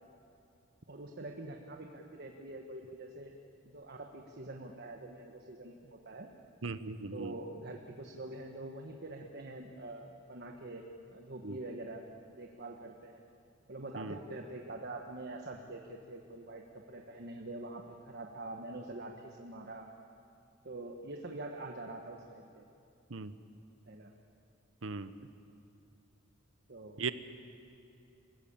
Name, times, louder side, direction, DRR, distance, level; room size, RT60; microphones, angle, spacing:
voice 1, 0.9-3.4 3.7-6.3 7.1-10.8 11.1-13.2 13.7-19.9 20.6-22.7 23.9-24.1 26.7-27.0, right 2 dB, 55° right, 2 dB, 1.3 m, -45 dB
voice 2, 6.6-7.3 11.4-11.6 14.0-14.2 23.1-23.3 24.8-25.1 27.0-27.1, right 4 dB, 75° right, 12 dB, 0.9 m, -38 dB
26.5 x 16.0 x 8.8 m, 2.6 s
head